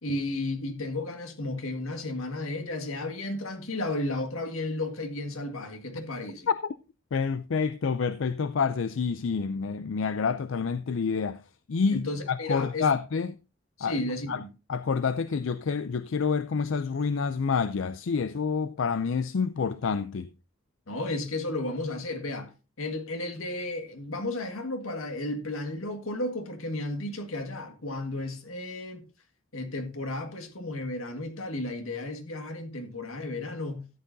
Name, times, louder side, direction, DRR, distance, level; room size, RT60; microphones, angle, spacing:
voice 1, 0.0-6.5 11.9-12.9 13.8-14.5 20.9-22.5 22.8-29.0 29.5-33.9, left 2 dB, 85° left, 1.8 m, -33 dB
voice 2, 7.1-11.4 11.7-13.3 13.8-14.0 14.3-14.4 14.7-20.3, left 5 dB, 65° left, 0.4 m, -28 dB
13.5 x 8.7 x 2.7 m
head